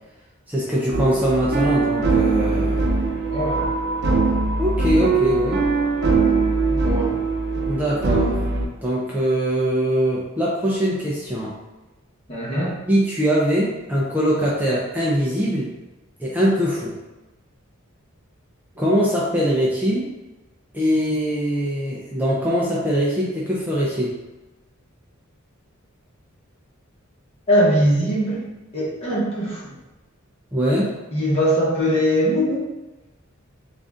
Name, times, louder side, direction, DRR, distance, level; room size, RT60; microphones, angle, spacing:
voice 1, 0.5-2.9 4.6-5.6 7.7-8.4 8.8-11.5 12.9-15.7 16.2-17.0 18.8-20.1 20.7-24.1 30.5-30.9, equal, 10° right, -6 dB, 0.5 m, -22 dB
sound 1, 0.9-8.7, right 3 dB, 55° right, 0.6 m, -21 dB
voice 2, 3.3-3.6 6.7-7.2 12.3-12.7 27.5-28.4 28.7-29.7 31.1-32.6, equal, 30° left, -6 dB, 1.2 m, -21 dB
3.7 x 2.6 x 3.6 m, 1.1 s
head